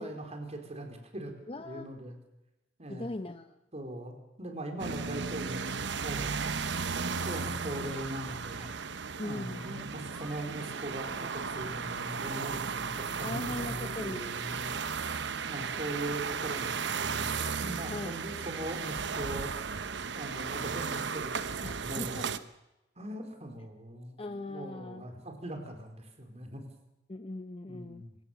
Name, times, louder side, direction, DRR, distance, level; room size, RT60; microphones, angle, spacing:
voice 1, 0.0-1.3 1.6-2.2 2.8-3.1 3.7-6.3 6.9-14.7 15.5-16.9 17.2-22.3 23.0-24.2 24.5-26.6 27.7-28.2, right 1 dB, 35° right, 4 dB, 4.2 m, -41 dB
voice 2, 1.5-1.9 2.9-3.6 9.2-9.6 13.2-14.3 17.9-18.2 21.6-22.3 24.2-25.0 27.1-28.0, left 2 dB, 30° left, 8 dB, 0.8 m, -39 dB
sound 1, 4.8-22.4, right 5 dB, 70° right, 1.0 m, -35 dB
Yell, 5.5-5.8 7.1-8.8 9.5-10.8, equal, ahead, 3.5 m, -54 dB
26.0 x 16.5 x 7.2 m, 0.95 s
head